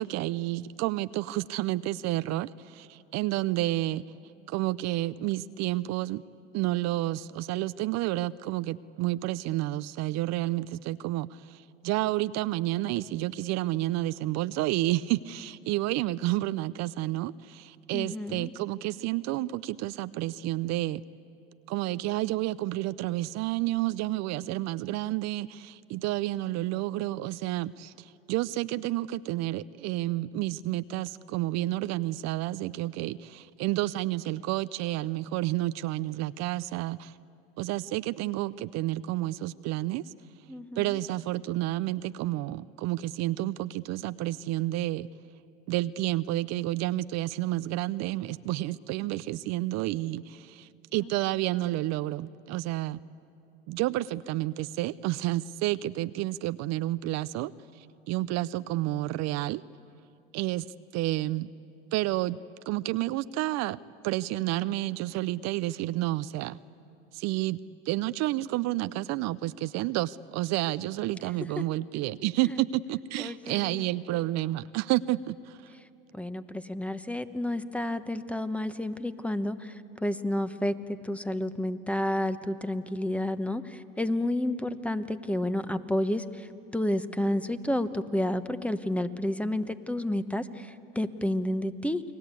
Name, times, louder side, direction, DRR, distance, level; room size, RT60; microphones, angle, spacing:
voice 1, 0.0-4.0 4.5-6.2 6.5-21.0 21.7-37.2 37.6-40.4 40.8-45.1 45.7-53.0 53.7-59.6 60.3-60.7 60.9-61.5 61.9-62.4 62.7-66.6 67.1-67.6 67.8-75.8, right 16 dB, 60° right, 15 dB, 0.6 m, -30 dB
voice 2, 17.9-18.5 40.5-41.0 71.6-71.7 73.2-73.8 76.1-92.0, left 1 dB, 5° left, 11 dB, 1.1 m, -30 dB
29.5 x 20.0 x 8.4 m, 2.6 s
hypercardioid pair, 80°, 30 cm